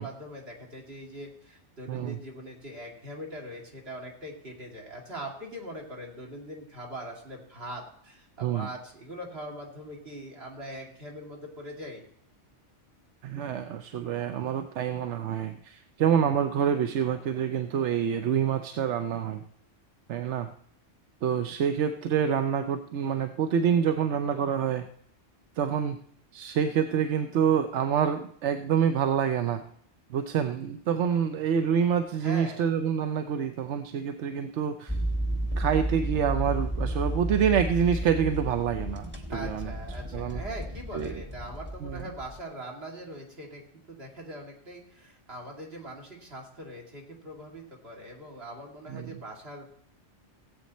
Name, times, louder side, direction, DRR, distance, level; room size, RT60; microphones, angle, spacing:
voice 1, 0.0-12.1 32.2-32.6 36.8-37.1 39.3-43.6 43.9-49.7, right 1 dB, 55° right, -1 dB, 2.9 m, -41 dB
voice 2, 1.9-2.2 8.4-8.7 13.2-19.4 20.1-20.5 21.2-24.9 25.6-26.0 26.3-29.6 30.1-35.0 35.6-39.7 40.1-40.4 40.9-41.1 41.8-42.0 48.9-49.2, right 8 dB, 75° right, 9 dB, 1.0 m, -27 dB
sound 1, 34.9-42.4, right 1 dB, 10° right, 1.2 m, -32 dB
17.0 x 8.3 x 4.2 m, 0.68 s
omnidirectional pair, 1.2 m